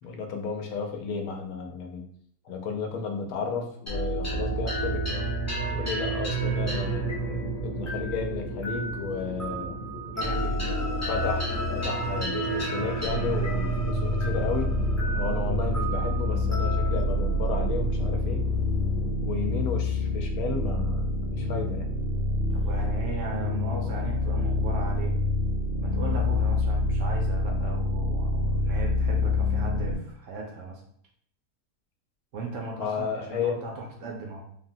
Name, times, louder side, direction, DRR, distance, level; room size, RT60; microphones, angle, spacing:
voice 1, 0.0-2.1 2.4-5.3 5.7-9.8 11.1-14.7 15.1-18.4 19.2-21.9 32.8-33.5, left 5 dB, 80° left, 3 dB, 1.1 m, -33 dB
sound 1, 3.9-18.6, right 2 dB, 15° left, 0.5 m, -31 dB
sound 2, 6.4-19.1, right 1 dB, 50° left, 1.1 m, -39 dB
voice 2, 10.1-11.0 22.5-25.2 25.8-30.8 32.3-34.5, right 3 dB, 65° right, 0 dB, 0.8 m, -37 dB
sound 3, 13.0-30.0, left 2 dB, 85° right, 1.4 m, -27 dB
3.5 x 2.1 x 2.6 m, 0.62 s
omnidirectional pair, 1.5 m